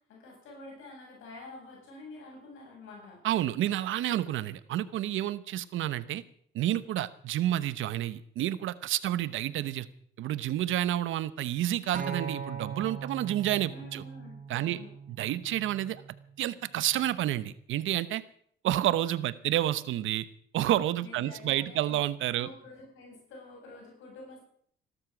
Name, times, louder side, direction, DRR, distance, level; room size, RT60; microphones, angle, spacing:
voice 1, 0.0-3.2 13.7-14.9 21.0-22.1 22.4-24.4, left 2 dB, 85° left, -1 dB, 7.5 m, -48 dB
voice 2, 3.2-6.2 6.5-9.9 10.2-14.0 14.5-14.8 15.2-16.0 16.4-18.2 18.6-20.3 20.5-22.5, right 13 dB, 80° right, 15 dB, 1.0 m, -29 dB
Acoustic guitar, 11.9-16.2 17.0-17.1, right 5 dB, 40° right, 3.3 m, -40 dB
16.0 x 13.0 x 6.1 m, 0.63 s
cardioid pair, 90°, 20 cm